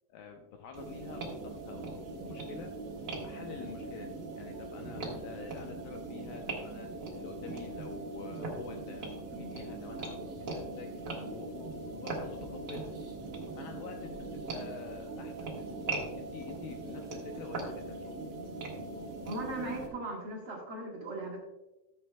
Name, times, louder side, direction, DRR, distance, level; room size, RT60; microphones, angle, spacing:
voice 1, 0.1-2.7 3.2-12.9 13.5-18.1, left 6 dB, 80° left, 3 dB, 2.1 m, -48 dB
sound 1, 0.7-19.9, right 2 dB, 70° right, 1.0 m, -40 dB
voice 2, 19.2-21.4, right 2 dB, 50° right, -4 dB, 1.6 m, -38 dB
14.5 x 7.5 x 2.2 m, 1.0 s
omnidirectional pair, 4.7 m